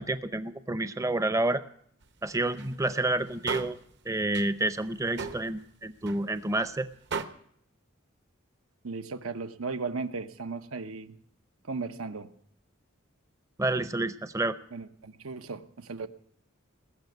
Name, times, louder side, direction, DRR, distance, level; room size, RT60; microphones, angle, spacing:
voice 1, 0.0-1.6 2.2-3.8 4.1-6.9 13.6-14.6, right 2 dB, 15° right, 12 dB, 0.6 m, -29 dB
sound 1, 2.0-2.1 2.4-2.9 3.2-3.8 4.2-4.5 4.8-5.7 6.1-6.2 6.5-6.6 7.1-7.2, right 4 dB, 55° right, 1.0 m, -36 dB
voice 2, 8.8-11.1 11.6-12.3 14.7-16.1, right 4 dB, 85° right, 10 dB, 0.9 m, -36 dB
20.0 x 6.9 x 9.3 m, 0.64 s
head